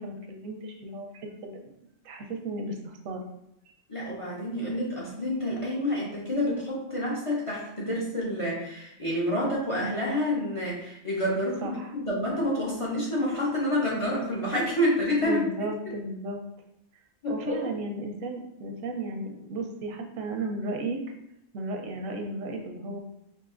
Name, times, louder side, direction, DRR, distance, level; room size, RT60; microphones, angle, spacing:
voice 1, 0.0-1.8 2.0-3.2 3.7-3.8 11.6-11.9 15.2-16.4 17.3-21.0 21.5-23.0, right 2 dB, 90° right, 2 dB, 1.1 m, -34 dB
voice 2, 3.9-15.9 17.2-17.7, left 1 dB, 30° left, -5 dB, 0.7 m, -28 dB
4.8 x 2.6 x 2.5 m, 0.78 s
omnidirectional pair, 1.3 m